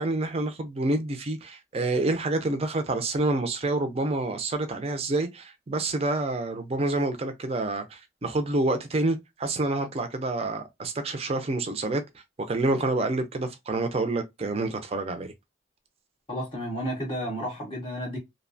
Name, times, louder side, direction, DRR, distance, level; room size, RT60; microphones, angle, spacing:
voice 1, 0.0-12.0 12.5-15.3, right 2 dB, 30° right, 0.4 m, -28 dB
voice 2, 16.3-18.2, equal, 25° left, 0.6 m, -32 dB
2.6 x 2.1 x 2.5 m
head